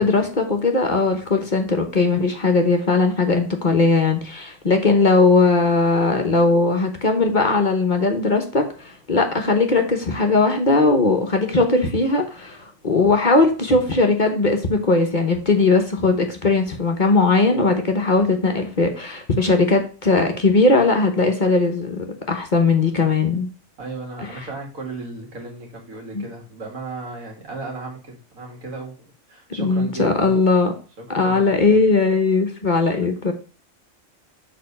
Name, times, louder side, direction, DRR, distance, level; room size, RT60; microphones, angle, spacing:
voice 1, 0.0-23.5 26.1-26.2 29.6-30.7 31.1-33.3, left 3 dB, 40° left, 4 dB, 1.0 m, -19 dB
voice 2, 23.8-30.4 31.1-31.8 32.8-33.1, right 3 dB, 80° right, 0 dB, 2.4 m, -35 dB
6.7 x 3.8 x 5.3 m, 0.37 s
omnidirectional pair, 1.4 m